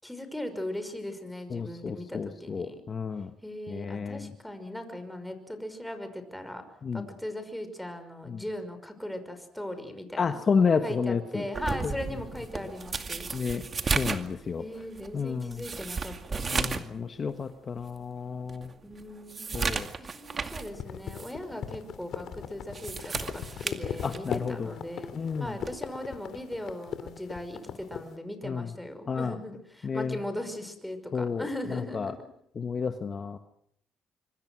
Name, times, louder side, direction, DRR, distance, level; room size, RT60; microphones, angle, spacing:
voice 1, 0.0-2.8 3.4-6.6 6.9-10.4 10.8-13.3 14.6-16.6 18.8-19.5 20.0-25.1 25.4-32.2, left 1 dB, 5° left, 8 dB, 5.6 m, -39 dB
voice 2, 1.5-3.3 3.7-4.3 6.8-7.0 8.3-8.4 10.2-11.5 13.3-13.6 13.9-14.6 15.1-15.6 16.5-18.7 19.5-19.9 24.0-24.7 25.1-25.5 28.4-28.7 29.1-29.3 29.8-30.2 31.1-31.4 31.7-32.1 32.6-33.4, left 5 dB, 45° left, 8 dB, 1.5 m, -30 dB
sound 1, 11.5-16.9 17.3-17.4 18.0-18.1 18.5-20.7 21.1-21.3 22.5-24.5 25.6-25.8, right 5 dB, 40° right, 2.2 m, -34 dB
sound 2, 20.7-28.1, left 8 dB, 70° left, 2.8 m, -38 dB
25.5 x 24.5 x 6.3 m, 0.72 s
cardioid pair, 90°, 0 cm